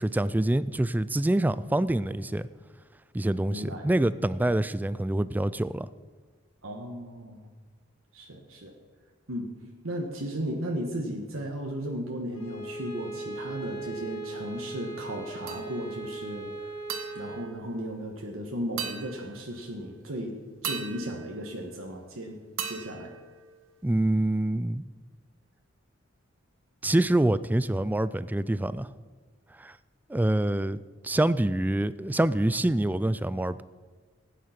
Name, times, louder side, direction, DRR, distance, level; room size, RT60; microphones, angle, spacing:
voice 1, 0.0-2.5 3.1-5.9 23.8-24.8 26.8-28.9 29.6-29.8 30.1-33.6, right 1 dB, 10° right, 16 dB, 0.3 m, -26 dB
voice 2, 3.5-3.9 6.6-7.5 8.1-8.7 9.3-9.5 9.8-16.7 17.1-20.3 20.6-22.4 22.6-23.1, equal, 90° right, 1 dB, 1.4 m, -35 dB
Bowed string instrument, 12.3-17.5, right 2 dB, 80° left, 2.4 m, -38 dB
sound 1, 15.5-16.1 16.9-18.3 18.8-19.8 20.6-22.1 22.6-24.0, right 7 dB, 70° right, 1.3 m, -39 dB
15.0 x 9.4 x 5.9 m, 1.5 s
head